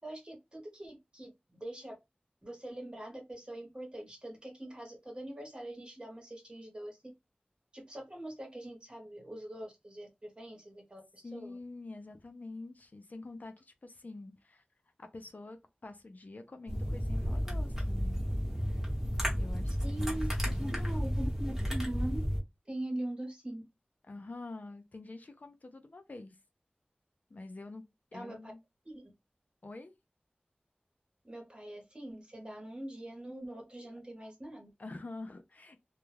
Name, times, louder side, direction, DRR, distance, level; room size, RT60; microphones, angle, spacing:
voice 1, 0.0-1.9 2.4-7.0 7.7-11.6 19.7-20.3 20.6-22.2 22.7-23.6 28.1-28.5 28.8-29.1 31.2-34.7, right 1 dB, 30° right, 1.0 m, -42 dB
voice 2, 11.2-14.6 15.0-18.2 19.3-20.2 20.5-20.9 24.1-26.4 27.3-27.8 28.1-28.6 29.6-29.9 34.8-35.8, left 2 dB, 55° left, 0.4 m, -46 dB
sound 1, 16.7-22.4, equal, 10° right, 1.1 m, -32 dB
2.2 x 2.2 x 3.1 m
wide cardioid pair, 60°, 3 cm